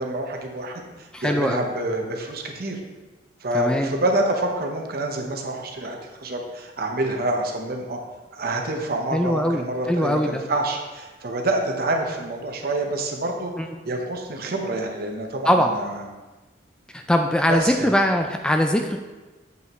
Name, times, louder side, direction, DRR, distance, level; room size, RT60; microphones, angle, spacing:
voice 1, 0.0-2.8 3.4-8.0 8.3-13.5 13.8-16.1 17.5-17.9, right 2 dB, 55° right, 3 dB, 0.9 m, -27 dB
voice 2, 1.1-1.6 3.5-3.9 9.1-10.4 13.6-13.7 15.5-15.7 16.9-19.0, equal, 5° left, 4 dB, 0.3 m, -21 dB
7.7 x 5.5 x 3.0 m, 1.2 s
head